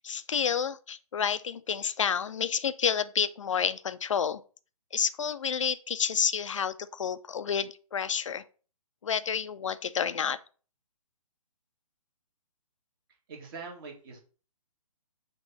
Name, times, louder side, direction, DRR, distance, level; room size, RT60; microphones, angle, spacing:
voice 1, 0.0-4.4 4.9-8.4 9.0-10.4, left 7 dB, 55° left, 0.4 m, -29 dB
voice 2, 13.3-14.2, right 4 dB, 35° right, 2.0 m, -43 dB
6.2 x 3.0 x 5.4 m
figure-of-eight pair, 135°, 19 cm